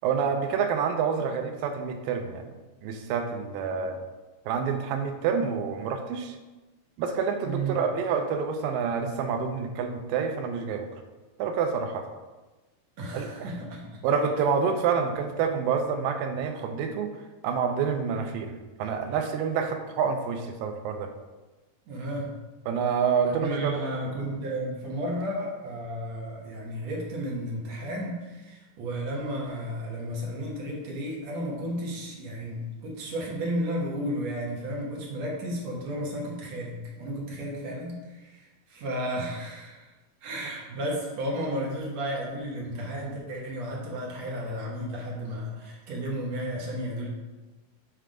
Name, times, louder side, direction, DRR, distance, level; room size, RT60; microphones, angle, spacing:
voice 1, 0.0-2.5 2.8-4.0 4.5-6.4 7.0-10.9 11.4-12.1 13.1-13.5 14.0-17.1 17.4-21.1 22.7-23.8, right 6 dB, 90° right, 6 dB, 2.4 m, -28 dB
voice 2, 7.4-7.8 13.0-14.0 21.9-22.3 23.3-39.9 40.2-47.1, right 1 dB, 60° right, -2 dB, 2.0 m, -33 dB
7.5 x 3.3 x 5.0 m, 1.2 s
omnidirectional pair, 3.9 m